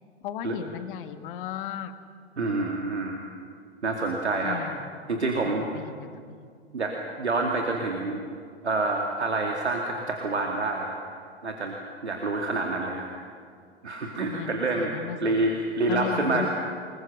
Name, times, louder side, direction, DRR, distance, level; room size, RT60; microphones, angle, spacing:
voice 1, 0.2-1.9 4.4-4.9 5.4-6.1 14.3-15.4 15.9-16.5, left 10 dB, 50° left, 8 dB, 1.8 m, -35 dB
voice 2, 2.4-3.2 3.8-4.6 5.1-5.7 6.7-8.2 8.6-11.0 11.4-11.7 12.0-13.1 13.8-14.9 15.2-16.5, right 3 dB, 80° right, 1 dB, 2.4 m, -27 dB
28.5 x 21.0 x 6.5 m, 2.2 s
figure-of-eight pair, 100°, 33 cm